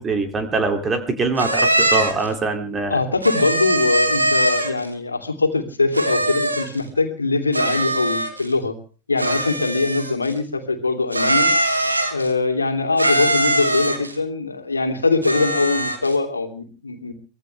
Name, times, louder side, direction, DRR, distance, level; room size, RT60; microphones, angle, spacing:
voice 1, 0.0-3.0, right 3 dB, 20° right, 7 dB, 2.7 m, -23 dB
sound 1, 1.4-2.3 3.2-4.9 5.9-6.8 7.5-8.5 9.2-10.3 11.1-12.3 13.0-14.1 15.2-16.1, right 1 dB, 85° right, 2.9 m, -21 dB
voice 2, 2.9-8.7 9.1-11.5 12.1-17.1, left 3 dB, 80° left, 7 dB, 2.8 m, -22 dB
24.0 x 17.5 x 3.4 m, 0.38 s
figure-of-eight pair, 90°, 0 cm